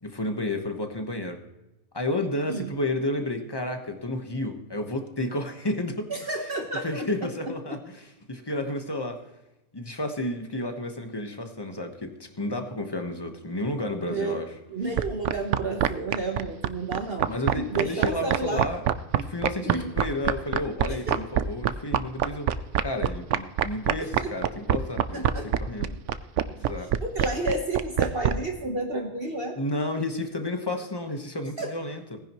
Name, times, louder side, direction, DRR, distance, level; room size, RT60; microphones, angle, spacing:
voice 1, 0.0-1.4 1.9-6.1 6.8-9.2 9.7-14.5 17.3-18.8 19.1-22.5 22.8-25.3 25.6-25.9 26.4-27.0 29.6-32.2, left 1 dB, 20° left, 5 dB, 1.2 m, -31 dB
voice 2, 6.1-7.1 14.1-14.4 14.7-18.7 19.6-19.9 20.9-21.2 24.2-24.3 25.1-25.5 27.0-29.6 31.6-31.7, right 2 dB, 45° right, 2 dB, 1.4 m, -31 dB
sound 1, 15.0-28.3, right 11 dB, 65° right, 0.9 m, -23 dB
18.5 x 10.0 x 3.0 m, 0.96 s
omnidirectional pair, 1.4 m